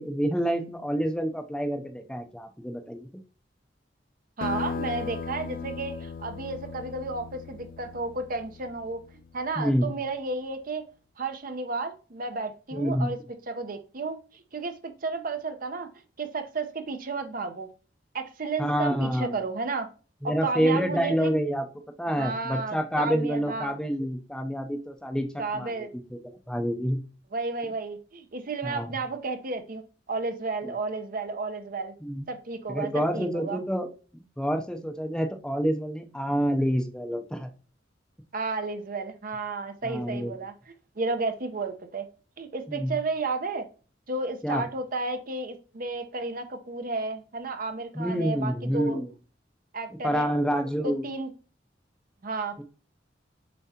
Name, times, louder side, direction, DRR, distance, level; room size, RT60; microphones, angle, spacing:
voice 1, 0.0-3.1 9.6-9.9 12.7-13.1 18.6-19.4 20.2-21.7 22.0-25.3 25.5-25.7 26.5-27.0 28.6-28.9 30.6-30.7 32.0-32.3 32.7-33.9 34.4-37.5 39.8-40.4 42.7-42.9 44.4-44.6 47.9-49.1 50.0-51.1 52.6-52.7, equal, 5° left, 5 dB, 0.6 m, -27 dB
sound 1, 4.4-9.5, left 5 dB, 50° left, 0.4 m, -37 dB
voice 2, 4.4-9.0 9.3-10.8 11.2-13.2 13.5-15.9 16.2-17.7 18.1-19.9 20.2-21.3 22.2-23.7 25.4-25.9 27.3-29.8 30.1-31.9 32.3-33.6 38.3-42.1 42.4-43.6 44.1-49.0 49.7-50.3 50.8-51.3 52.2-52.6, right 3 dB, 50° right, 8 dB, 0.8 m, -32 dB
7.3 x 4.6 x 2.8 m, 0.36 s
head